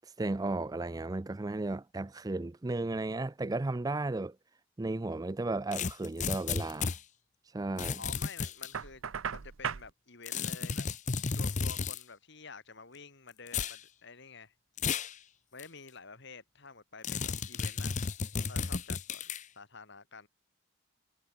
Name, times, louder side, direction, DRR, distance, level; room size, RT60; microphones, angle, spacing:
voice 1, 0.2-4.4 4.8-6.9 7.5-8.0, right 2 dB, 20° right, 0.4 m, -34 dB
sound 1, 5.7-7.0 7.8-8.7 10.3-12.0 13.5-13.8 14.8-15.1 15.6-15.7 17.0-19.4, left 5 dB, 35° left, 0.7 m, -33 dB
voice 2, 7.9-10.9 11.3-14.5 15.5-17.9 18.4-20.3, left 4 dB, 55° left, 2.7 m, -50 dB
Knock, 8.7-9.9, right 7 dB, 75° right, 0.7 m, -37 dB
head